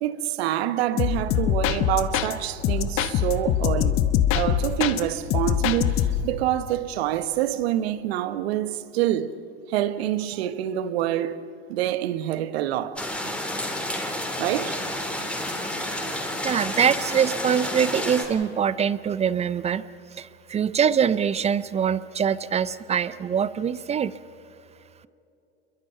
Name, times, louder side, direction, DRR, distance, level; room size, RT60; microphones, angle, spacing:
voice 1, 0.0-3.9 4.3-9.3 9.7-11.4 11.7-13.1 14.4-14.8, right 12 dB, 65° right, 1.3 m, -26 dB
sound 1, 1.0-2.3 2.6-5.0 5.3-6.3, left 10 dB, 40° left, 1.3 m, -23 dB
sound 2, 13.0-18.2, left 1 dB, 5° left, 4.3 m, -30 dB
voice 2, 16.4-19.8 20.2-24.1, right 8 dB, 20° right, 0.5 m, -23 dB
28.0 x 23.0 x 5.7 m
hypercardioid pair, 100°, 33 cm